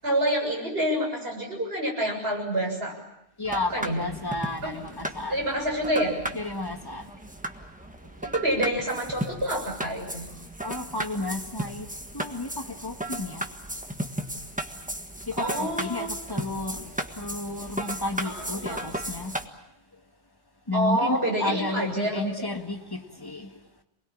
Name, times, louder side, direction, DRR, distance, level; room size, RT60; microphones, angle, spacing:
voice 1, 0.0-2.9 3.7-4.0 4.6-4.7 5.3-6.2 8.2-10.2 15.4-16.1 18.2-18.8 20.7-22.5, right 1 dB, 55° right, 7.5 m, -27 dB
voice 2, 3.4-5.4 6.3-7.0 10.6-11.9 12.1-13.4 15.3-19.4 20.7-23.5, left 2 dB, 20° left, 1.7 m, -32 dB
sound 1, 3.4-19.4, right 1 dB, 5° right, 1.5 m, -35 dB
28.0 x 21.0 x 8.7 m
omnidirectional pair, 1.2 m